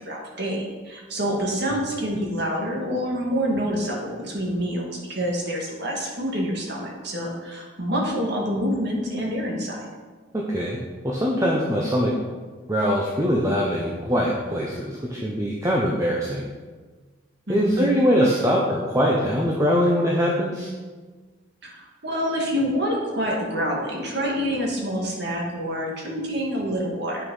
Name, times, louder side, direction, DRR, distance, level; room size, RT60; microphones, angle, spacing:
voice 1, 0.0-9.8 17.5-17.9 21.6-27.3, equal, 55° right, -1 dB, 2.0 m, -27 dB
voice 2, 10.3-10.8 11.0-12.1 12.7-16.4 17.5-20.7, equal, 15° right, -2 dB, 0.8 m, -22 dB
8.4 x 6.3 x 5.5 m, 1.4 s
head